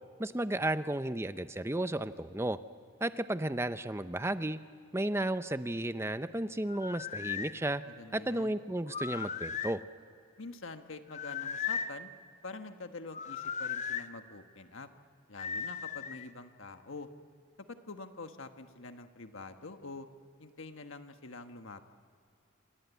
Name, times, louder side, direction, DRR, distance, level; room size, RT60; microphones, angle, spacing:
voice 1, 0.2-2.6 3.0-4.6 4.9-7.8 8.1-9.8, right 1 dB, 10° right, 11 dB, 0.6 m, -33 dB
sound 1, 6.7-7.5 8.9-9.8 11.1-12.0 13.1-14.1 15.4-16.3, left 7 dB, 35° left, 0.7 m, -37 dB
voice 2, 7.9-8.6 10.4-12.1 12.4-14.9 15.3-17.1 17.7-20.1 20.4-21.8, left 3 dB, 70° left, 7 dB, 1.4 m, -46 dB
27.5 x 26.0 x 8.3 m, 2.3 s
head